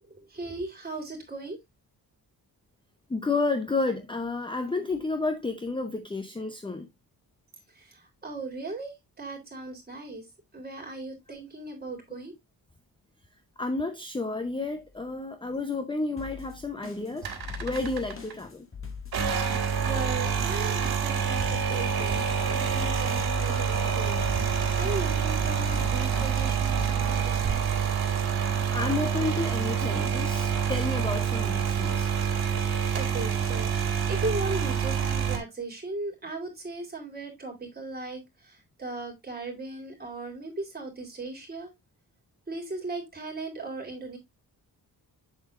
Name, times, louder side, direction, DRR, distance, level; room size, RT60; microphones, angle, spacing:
voice 1, 0.1-1.6 7.7-10.3 10.5-12.3 19.8-22.2 22.5-24.3 24.8-27.7 32.9-41.7 42.5-44.2, right 2 dB, 25° right, 3.5 m, -37 dB
voice 2, 3.1-6.9 13.6-18.7 28.7-32.1, left 3 dB, 15° left, 0.7 m, -31 dB
sound 1, 16.2-26.9, left 6 dB, 35° left, 1.8 m, -42 dB
sound 2, 17.2-18.3 19.0-35.4, right 7 dB, 70° right, 2.1 m, -27 dB
7.8 x 7.3 x 2.5 m
wide cardioid pair, 140°, 38 cm